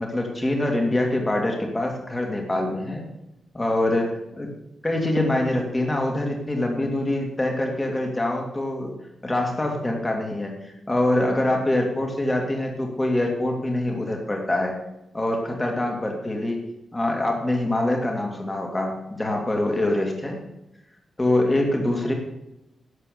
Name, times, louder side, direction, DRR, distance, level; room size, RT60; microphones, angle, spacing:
voice 1, 0.0-3.0 3.5-4.5 4.8-8.9 9.2-14.7 15.1-16.6 16.9-20.4 21.2-22.1, left 1 dB, 15° left, 2 dB, 2.4 m, -24 dB
11.5 x 7.7 x 6.7 m, 0.90 s
wide cardioid pair, 160°, 0 cm